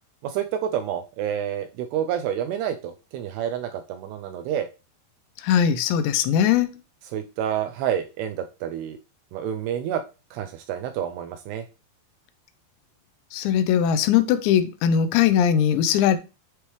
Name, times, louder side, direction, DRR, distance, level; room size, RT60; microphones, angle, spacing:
voice 1, 0.2-4.7 7.0-9.0 9.3-10.0 10.3-11.7, right 9 dB, 85° right, 2.3 m, -29 dB
voice 2, 5.4-6.7 13.3-16.2, left 9 dB, 85° left, 2.9 m, -20 dB
9.7 x 3.3 x 3.1 m
omnidirectional pair, 5.1 m